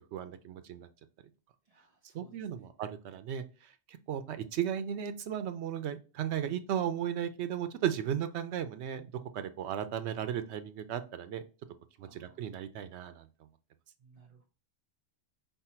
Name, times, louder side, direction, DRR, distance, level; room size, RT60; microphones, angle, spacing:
voice 1, 0.1-0.9 2.1-3.4 4.1-9.0 9.3-11.4 12.0-13.3, right 9 dB, 80° right, 10 dB, 0.9 m, -35 dB
voice 2, 1.6-2.7 12.0-12.4 14.0-14.5, right 4 dB, 40° right, -1 dB, 0.7 m, -61 dB
5.4 x 2.0 x 4.3 m, 0.34 s
omnidirectional pair, 1.1 m